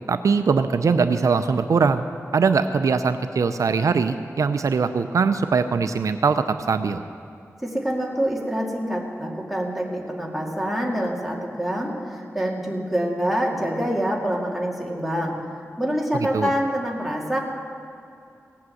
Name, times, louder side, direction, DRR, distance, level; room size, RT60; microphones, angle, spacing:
voice 1, 0.1-2.0 2.3-7.0 16.3-16.5, right 5 dB, 70° right, 9 dB, 0.5 m, -21 dB
voice 2, 7.6-15.4 15.8-17.4, equal, 5° right, -2 dB, 2.2 m, -26 dB
17.5 x 8.6 x 7.8 m, 2.5 s
wide cardioid pair, 120°, 6 cm